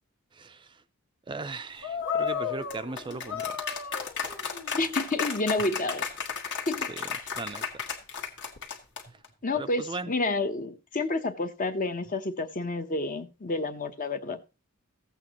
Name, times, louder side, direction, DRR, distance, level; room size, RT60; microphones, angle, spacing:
voice 1, 0.3-0.8 1.3-3.6 6.9-7.1 7.4-7.8 9.5-10.1, right 3 dB, 20° right, 0.4 m, -38 dB
sound 1, 1.8-9.3, left 6 dB, 60° left, 1.8 m, -33 dB
voice 2, 4.7-6.1 6.7-6.9 9.4-14.4, left 2 dB, 40° left, 0.9 m, -29 dB
15.0 x 8.2 x 3.0 m
head